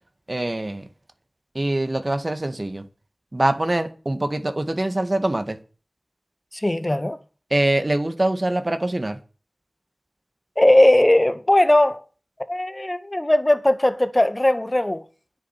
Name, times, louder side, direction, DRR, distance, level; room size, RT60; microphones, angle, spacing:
voice 1, 0.3-0.9 1.5-2.8 3.3-5.6 7.5-9.2, right 1 dB, 40° right, 2.1 m, -24 dB
voice 2, 6.5-7.2 10.6-12.0 12.5-15.0, left 1 dB, 25° left, 2.0 m, -18 dB
10.5 x 9.0 x 9.3 m
wide cardioid pair, 55°, 0 cm